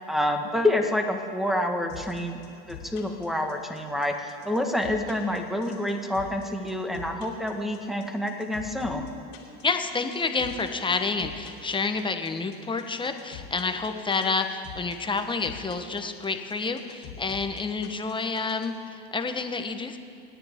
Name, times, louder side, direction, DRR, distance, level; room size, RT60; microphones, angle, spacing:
voice 1, 0.1-2.4 2.7-9.1, left 1 dB, ahead, 4 dB, 1.6 m, -28 dB
sound 1, 1.9-18.7, left 9 dB, 90° left, 2.9 m, -44 dB
voice 2, 9.6-20.0, left 4 dB, 15° left, 6 dB, 1.1 m, -29 dB
26.0 x 10.0 x 3.7 m, 2.6 s
supercardioid pair, 100°, 31 cm